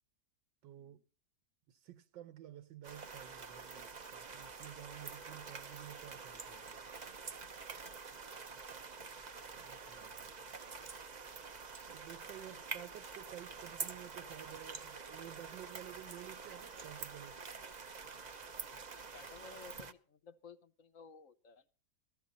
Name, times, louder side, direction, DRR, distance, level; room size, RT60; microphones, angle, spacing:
voice 1, 0.6-1.0 1.7-6.8 9.5-10.3 11.9-17.4, right 12 dB, 80° right, 1.5 m, -52 dB
sound 1, 2.8-19.9, right 5 dB, 50° right, 0.5 m, -47 dB
voice 2, 19.0-21.7, left 5 dB, 55° left, 1.0 m, -56 dB
17.0 x 14.0 x 4.0 m
omnidirectional pair, 2.0 m